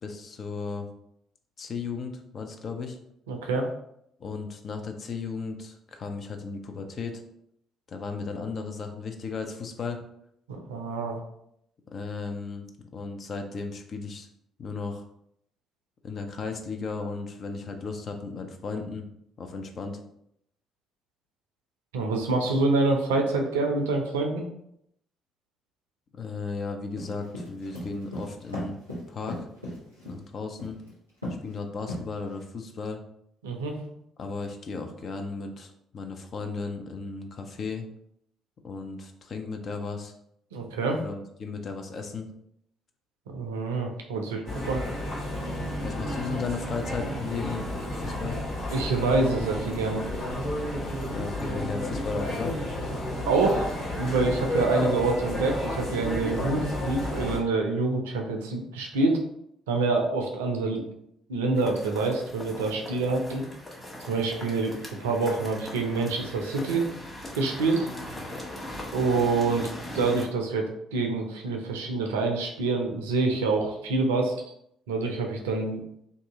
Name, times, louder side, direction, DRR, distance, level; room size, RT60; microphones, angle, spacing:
voice 1, 0.0-0.9 1.6-3.0 4.2-7.2 7.9-10.0 11.9-12.7 12.9-14.3 14.6-15.1 16.0-19.0 19.4-20.0 26.1-28.8 29.1-29.5 30.0-30.8 31.4-33.0 34.2-37.8 38.6-40.1 41.0-42.3 45.8-47.6 47.9-48.4 51.1-52.5, left 4 dB, 45° left, 5 dB, 0.5 m, -35 dB
voice 2, 3.3-3.7 10.5-11.2 21.9-24.4 33.4-33.8 40.5-41.0 43.3-44.8 48.7-50.0 53.3-59.2 59.7-60.9 61.3-63.4 64.1-66.9 67.4-67.9 68.9-74.3 74.9-75.8, right 3 dB, 70° right, 3 dB, 0.5 m, -26 dB
sound 1, 27.0-30.2 30.6-30.9 31.2-31.5 31.9-32.4, left 1 dB, 90° left, 1.0 m, -36 dB
Mall Macys Outside transition, 44.5-57.4, left 1 dB, 60° left, 1.3 m, -32 dB
sound 2, 61.5-70.3, left 1 dB, 10° left, 1.2 m, -40 dB
2.7 x 2.6 x 3.5 m, 0.74 s
figure-of-eight pair, 45°, 0 cm